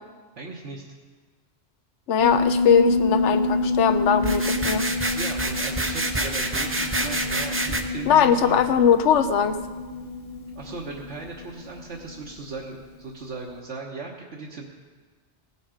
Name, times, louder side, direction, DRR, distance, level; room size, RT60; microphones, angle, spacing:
voice 1, 0.4-0.8 5.1-8.7 10.5-14.7, right 3 dB, 75° right, -4 dB, 1.4 m, -37 dB
voice 2, 2.1-4.9 8.1-9.6, left 7 dB, 80° left, 10 dB, 1.0 m, -20 dB
Piano, 2.2-12.9, left 3 dB, 35° left, 0.8 m, -28 dB
sound 1, 4.2-7.8, right 2 dB, 15° right, 0.5 m, -27 dB
17.5 x 7.1 x 5.0 m, 1.4 s
omnidirectional pair, 1.2 m